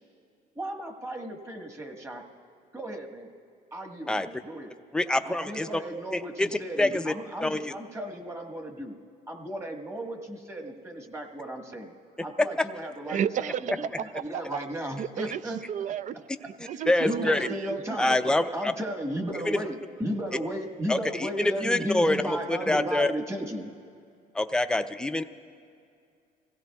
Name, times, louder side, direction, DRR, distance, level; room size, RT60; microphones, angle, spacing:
voice 1, 0.5-2.2 2.7-3.3 3.7-4.7 5.2-8.9 9.3-11.9 12.2-15.6 16.7-16.8 17.0-18.2 18.5-23.7, equal, 15° right, 2 dB, 1.5 m, -35 dB
voice 2, 4.9-5.7 6.1-6.5 6.8-7.1 7.4-7.7 12.4-12.5 16.9-17.4 18.0-18.7 19.5-19.6 20.9-23.1 24.3-25.2, left 1 dB, 5° left, 8 dB, 0.5 m, -25 dB
voice 3, 13.1-14.4 15.0-15.4 15.7-18.0, right 9 dB, 50° right, 16 dB, 0.4 m, -33 dB
26.0 x 16.5 x 2.3 m, 2.3 s
cardioid pair, 110°, 17 cm